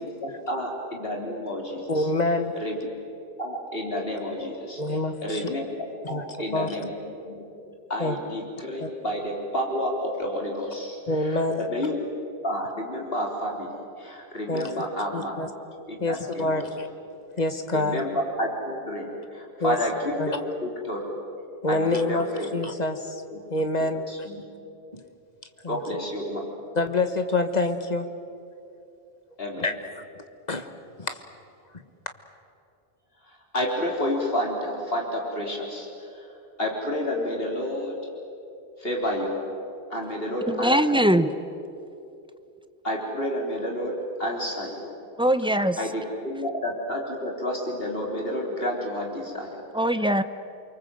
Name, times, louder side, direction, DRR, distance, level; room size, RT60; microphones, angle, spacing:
voice 1, 0.0-2.1 2.6-2.8 3.4-5.6 6.1-6.9 7.3-7.4 7.9-12.0 12.4-15.3 15.9-16.7 17.7-18.1 18.4-21.0 21.7-22.5 23.3-23.4 24.1-24.4 25.7-26.5 29.4-29.7 33.2-36.3 36.6-37.9 38.8-39.4 39.9-41.2 42.8-45.0 45.8-49.6, left 1 dB, 70° left, -1 dB, 4.3 m, -30 dB
voice 2, 1.9-2.6 4.8-5.5 6.1-6.2 6.5-6.7 8.0-8.2 8.8-8.9 11.1-11.7 14.5-14.7 15.1-15.5 16.0-16.9 17.4-18.0 19.6-19.8 20.2-20.3 21.6-22.3 22.5-23.2 23.5-24.0 24.9-25.0 25.6-25.8 26.7-28.1 29.6-30.0 30.5-30.7 31.0-31.2, left 2 dB, 45° left, 8 dB, 1.6 m, -26 dB
voice 3, 40.5-41.3 45.2-45.8 49.7-50.2, right 1 dB, 5° right, 11 dB, 0.8 m, -21 dB
29.0 x 24.0 x 8.0 m, 2.7 s
omnidirectional pair, 1.0 m